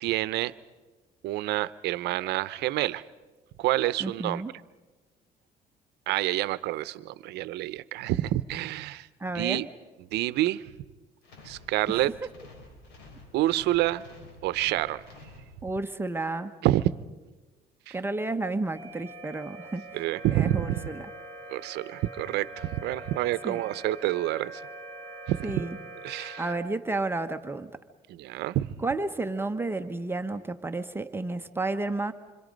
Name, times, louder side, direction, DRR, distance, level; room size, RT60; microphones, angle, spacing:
voice 1, 0.0-0.5 1.2-3.0 3.6-4.4 6.1-9.1 9.3-9.7 10.1-10.7 11.4-12.1 13.3-14.0 14.4-15.0 16.6-16.9 17.9-18.0 19.9-20.9 21.5-24.6 25.3-25.7 26.0-26.4 28.1-28.7, right 15 dB, 80° right, 17 dB, 0.7 m, -28 dB
voice 2, 4.0-4.5 9.2-9.6 11.9-12.0 15.6-16.5 17.9-19.9 20.3-21.1 23.4-23.6 25.4-25.8 26.4-27.7 28.8-32.1, right 2 dB, 15° right, 8 dB, 0.9 m, -31 dB
sound 1, 11.2-16.0, left 3 dB, 85° left, 4.4 m, -50 dB
sound 2, 18.7-26.6, right 2 dB, 25° left, 7.4 m, -43 dB
26.5 x 26.0 x 5.2 m, 1.2 s
cardioid pair, 110°, 17 cm